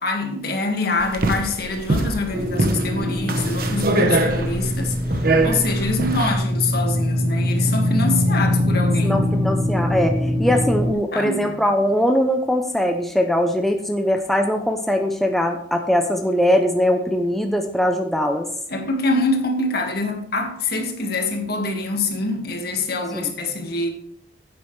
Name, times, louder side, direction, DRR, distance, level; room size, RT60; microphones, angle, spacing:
voice 1, 0.0-9.2 10.4-11.5 18.7-23.9, left 3 dB, 55° left, 3 dB, 1.8 m, -25 dB
sound 1, 1.0-6.3, right 2 dB, 55° right, 1.0 m, -23 dB
sound 2, 2.3-10.9, left 1 dB, 30° right, 0.8 m, -22 dB
voice 2, 9.0-10.1 10.4-18.5 23.1-23.2, equal, ahead, 4 dB, 0.6 m, -21 dB
10.0 x 8.6 x 3.2 m, 0.66 s
head